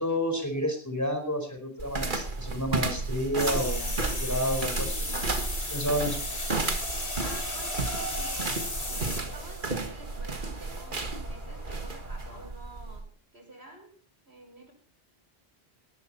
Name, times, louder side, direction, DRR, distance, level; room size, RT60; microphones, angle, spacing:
voice 1, 0.0-6.2, equal, 15° left, 5 dB, 4.7 m, -30 dB
sound 1, 1.8-13.0, right 3 dB, 50° right, 1.8 m, -33 dB
sound 2, 3.4-9.9, left 2 dB, 55° left, 3.5 m, -35 dB
Race car auto racing, 4.3-12.5, right 2 dB, 15° right, 5.8 m, -44 dB
voice 2, 7.2-8.5 8.9-13.0 13.3-13.9 14.3-14.7, right 1 dB, 75° right, 2 dB, 6.6 m, -49 dB
19.0 x 13.5 x 4.3 m, 0.42 s
omnidirectional pair, 1.1 m